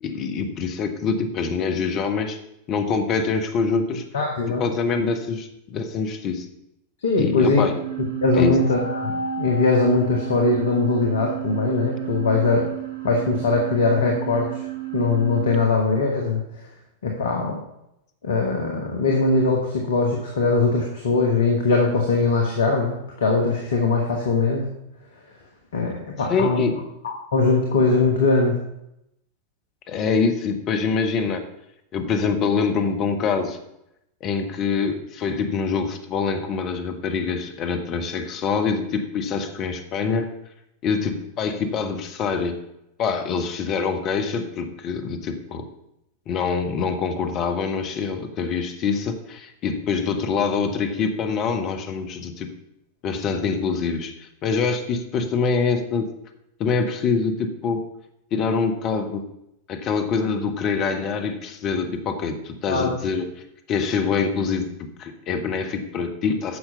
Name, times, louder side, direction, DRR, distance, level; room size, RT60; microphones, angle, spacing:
voice 1, 0.0-2.4 2.7-4.0 4.6-6.5 7.2-7.8 8.3-8.5 26.3-26.7 29.9-31.4 31.9-33.6 34.2-40.3 40.8-42.6 43.0-45.7 46.3-52.5 53.0-56.1 56.6-57.8 58.3-59.2 59.7-63.2 63.7-64.7 65.0-66.6, left 5 dB, 35° left, 6 dB, 1.3 m, -25 dB
voice 2, 4.1-4.6 7.0-7.6 8.2-12.7 13.0-14.6 14.9-16.4 17.0-17.6 18.2-24.7 25.7-26.7 27.0-28.6 62.7-63.0, left 3 dB, 60° left, 1 dB, 1.6 m, -21 dB
sound 1, 7.7-15.6, right 9 dB, 55° right, 2.9 m, -31 dB
9.7 x 6.5 x 5.7 m, 0.83 s
figure-of-eight pair, 90°, 0 cm